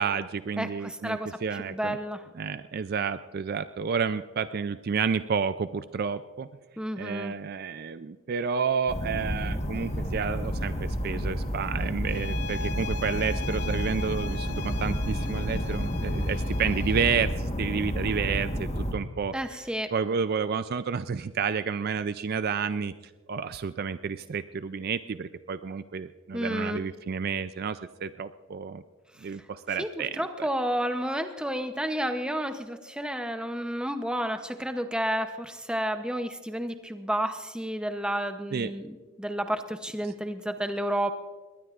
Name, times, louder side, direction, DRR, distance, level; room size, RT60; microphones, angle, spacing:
voice 1, 0.0-2.0 2.3-6.5 7.0-19.3 19.9-22.9 23.3-28.8 29.2-30.5 38.5-38.7, right 6 dB, 45° right, 12 dB, 0.3 m, -30 dB
voice 2, 0.6-2.2 6.8-7.3 19.3-19.9 26.3-26.8 29.8-29.9 30.2-41.1, equal, 5° right, 7 dB, 0.7 m, -31 dB
sound 1, 8.9-18.9, equal, 30° left, 1.3 m, -30 dB
sound 2, 12.1-17.3, left 5 dB, 75° left, 0.6 m, -40 dB
22.0 x 19.5 x 2.5 m, 1.4 s
head